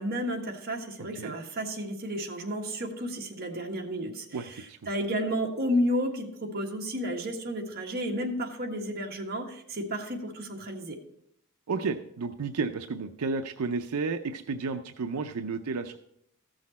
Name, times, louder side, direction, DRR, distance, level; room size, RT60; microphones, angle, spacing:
voice 1, 0.0-11.0, equal, 45° right, 1 dB, 1.5 m, -32 dB
voice 2, 4.3-4.8 11.7-16.0, right 4 dB, 85° right, 7 dB, 0.5 m, -32 dB
14.5 x 6.4 x 4.1 m, 0.72 s
head